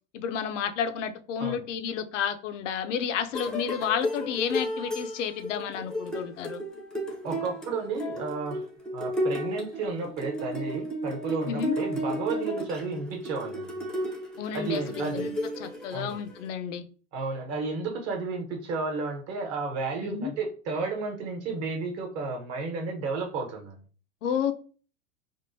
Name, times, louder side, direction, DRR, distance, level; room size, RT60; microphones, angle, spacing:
voice 1, 0.1-6.6 11.5-11.8 14.4-16.8 20.0-20.3 24.2-24.5, left 8 dB, 85° left, 0.6 m, -31 dB
sound 1, 3.3-16.5, equal, ahead, 0.5 m, -33 dB
voice 2, 7.2-8.6 8.9-13.7 14.5-15.3 15.9-16.2 17.1-23.8, right 4 dB, 45° right, 1.1 m, -32 dB
3.5 x 2.1 x 2.6 m
supercardioid pair, 125°, 36 cm